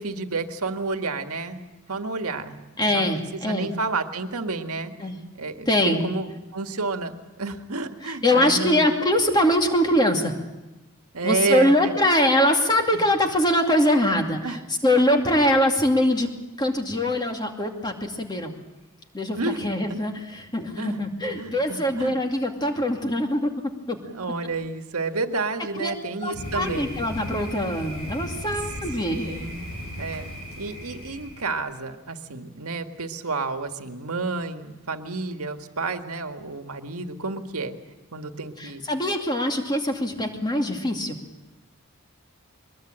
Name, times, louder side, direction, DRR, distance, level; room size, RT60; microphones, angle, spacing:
voice 1, 0.0-1.6 1.9-4.9 5.4-7.1 7.4-8.9 11.1-11.9 12.9-13.0 14.4-14.6 19.4-19.6 19.9-20.0 20.8-22.2 24.0-26.9 29.0-29.6 30.0-30.3 30.6-37.8 38.1-38.8, right 3 dB, 90° right, 7 dB, 1.8 m, -30 dB
voice 2, 2.8-3.7 5.0-5.2 5.7-6.0 8.2-10.3 11.2-14.6 14.8-16.3 16.6-18.5 19.1-23.5 23.9-24.0 25.8-25.9 26.2-29.4 38.6-41.2, left 1 dB, 20° left, 4 dB, 2.5 m, -23 dB
Thunder, 26.3-31.6, equal, 85° left, 7.7 m, -36 dB
22.5 x 21.0 x 8.9 m, 1.0 s
head